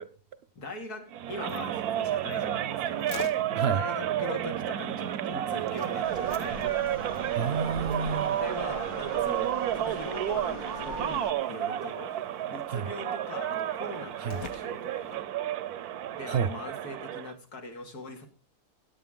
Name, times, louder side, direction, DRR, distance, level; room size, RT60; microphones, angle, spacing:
voice 1, 0.5-3.2 3.7-6.7 8.4-12.1 12.5-15.2 16.1-18.3, left 2 dB, 90° left, 2.9 m, -41 dB
sound 1, 1.1-17.3, right 11 dB, 85° right, 1.3 m, -31 dB
sound 2, 1.3-15.2, left 7 dB, 70° left, 1.4 m, -50 dB
sound 3, 6.0-11.3, left 3 dB, 35° left, 0.5 m, -43 dB
voice 2, 7.1-8.4 12.7-12.9 14.2-14.4 16.3-16.5, right 6 dB, 55° right, 0.8 m, -29 dB
16.5 x 9.5 x 3.8 m
omnidirectional pair, 1.6 m